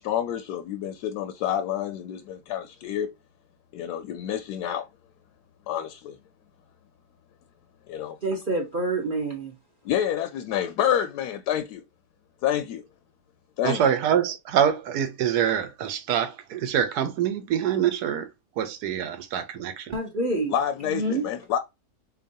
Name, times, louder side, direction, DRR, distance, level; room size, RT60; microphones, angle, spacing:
voice 1, 0.0-3.1 3.7-4.8 5.7-6.2 7.9-8.2 9.8-11.8 12.4-12.8 13.6-13.8 20.5-21.6, left 10 dB, 75° left, 1.1 m, -28 dB
voice 2, 8.2-9.5 19.9-20.5 20.8-21.3, right 2 dB, 40° right, 0.7 m, -27 dB
voice 3, 13.6-18.3 18.6-19.9, right 9 dB, 70° right, 1.2 m, -25 dB
4.1 x 3.0 x 2.6 m
omnidirectional pair, 1.9 m